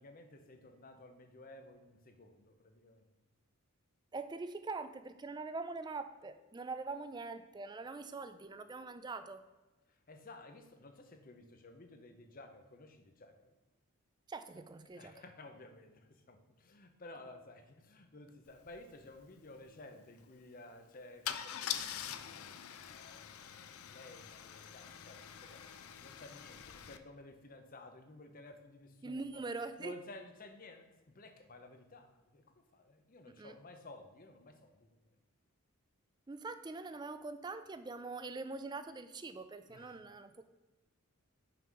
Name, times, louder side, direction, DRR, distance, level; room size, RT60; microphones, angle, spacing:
voice 1, 0.0-3.1 9.9-13.5 14.9-22.6 22.8-29.4 29.8-35.0 39.7-40.0, left 2 dB, 40° left, 7 dB, 0.7 m, -55 dB
voice 2, 4.1-9.4 14.3-15.1 29.0-29.9 33.4-33.6 36.3-40.4, right 3 dB, 20° right, 11 dB, 0.3 m, -43 dB
Car / Engine starting / Idling, 18.6-18.7 19.0-19.3 21.3-27.0, left 9 dB, 75° left, 0.5 m, -44 dB
5.8 x 5.5 x 4.7 m, 1.1 s
head